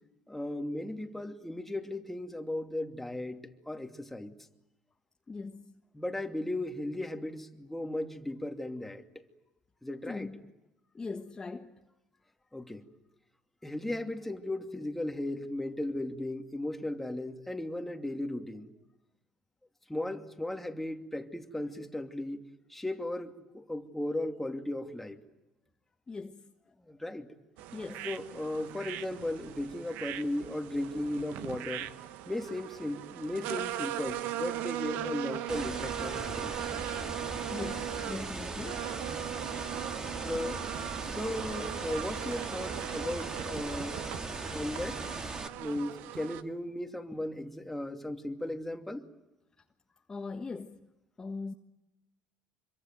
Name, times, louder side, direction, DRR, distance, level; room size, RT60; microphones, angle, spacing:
voice 1, 0.3-4.3 5.9-9.0 9.8-10.3 12.5-12.8 13.6-18.7 19.9-25.2 26.9-27.3 28.0-31.9 32.3-36.5 40.2-40.6 40.9-44.0 44.5-45.0 45.5-49.0, left 1 dB, 5° left, 2.7 m, -36 dB
voice 2, 5.3-5.7 10.1-10.5 10.9-11.8 26.1-26.5 27.7-28.1 37.5-38.9 50.1-50.9 51.2-51.5, left 4 dB, 25° left, 1.5 m, -40 dB
sound 1, 27.6-46.4, right 13 dB, 75° right, 1.2 m, -39 dB
sound 2, 35.5-45.5, right 3 dB, 25° right, 2.5 m, -39 dB
26.0 x 23.5 x 9.2 m
supercardioid pair, 80°, 3 cm